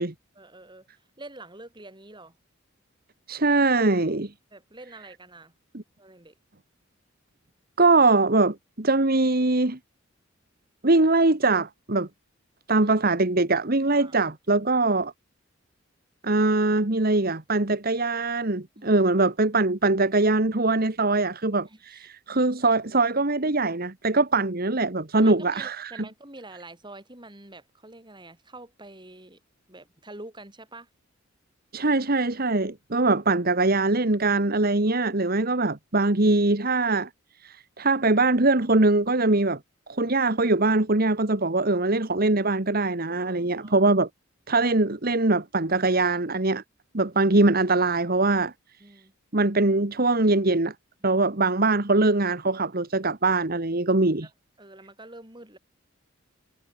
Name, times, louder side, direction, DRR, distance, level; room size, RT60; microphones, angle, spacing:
voice 1, 0.4-2.4 4.5-5.5 6.0-6.4 12.8-12.9 13.9-14.6 18.8-19.1 21.6-22.1 25.2-29.4 29.7-30.9 43.2-43.9 48.8-49.1 51.0-51.3 54.2-54.3 54.6-55.6, right 2 dB, 25° right, 7.6 m, -46 dB
voice 2, 3.3-4.3 7.8-9.8 10.8-12.1 12.7-15.1 16.2-26.0 31.7-37.1 37.4-39.6 39.9-44.1 44.5-46.6 46.9-48.5 49.3-50.7 51.0-54.3, right 2 dB, 45° right, 1.7 m, -22 dB
head